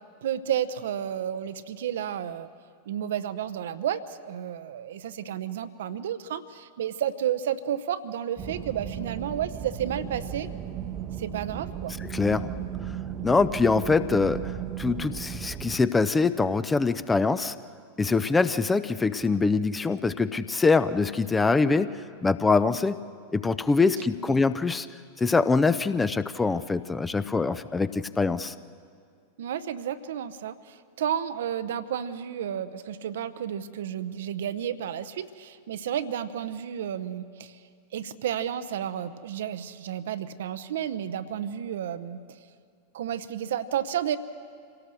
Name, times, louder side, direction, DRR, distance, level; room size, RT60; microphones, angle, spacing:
voice 1, 0.2-2.5 2.9-10.5 11.2-12.0 24.3-24.4 29.4-37.6 37.9-42.2 42.9-44.2, right 9 dB, 60° right, 13 dB, 0.8 m, -31 dB
sound 1, 8.4-15.8, right 9 dB, 30° right, 0.9 m, -36 dB
voice 2, 12.0-12.5 13.2-17.5 18.0-21.9 22.2-23.0 23.3-24.9 25.2-28.5, left 4 dB, 10° left, 14 dB, 0.6 m, -24 dB
26.0 x 17.5 x 6.5 m, 2.2 s
figure-of-eight pair, 90°, 0 cm